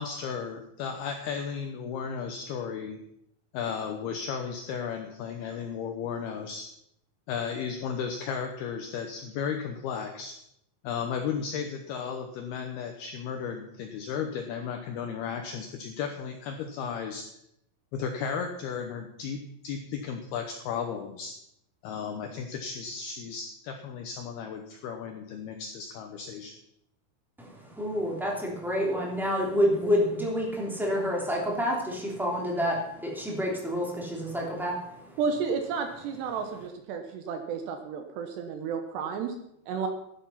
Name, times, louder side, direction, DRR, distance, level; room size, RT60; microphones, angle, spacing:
voice 1, 0.0-3.0 3.5-6.7 7.3-10.4 10.8-17.3 17.9-21.3 21.8-26.6, left 6 dB, 85° left, 5 dB, 2.3 m, -34 dB
voice 2, 27.4-35.2, equal, ahead, -3 dB, 1.5 m, -28 dB
voice 3, 35.2-39.3 39.7-39.9, right 5 dB, 75° right, 6 dB, 2.8 m, -32 dB
11.5 x 11.5 x 5.7 m, 0.77 s
omnidirectional pair, 5.7 m